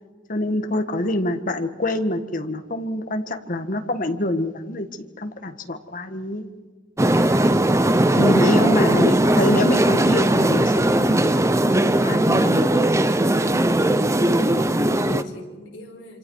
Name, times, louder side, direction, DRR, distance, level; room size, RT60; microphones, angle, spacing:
voice 1, 0.3-4.9 5.2-6.4 8.2-11.3 11.8-12.9, left 1 dB, 45° left, 7 dB, 1.6 m, -25 dB
sound 1, 7.0-15.2, right 1 dB, 15° right, 0.7 m, -18 dB
voice 2, 8.4-8.8 14.1-16.2, left 1 dB, 65° left, 1 dB, 5.1 m, -39 dB
27.0 x 26.5 x 4.8 m, 1.4 s
head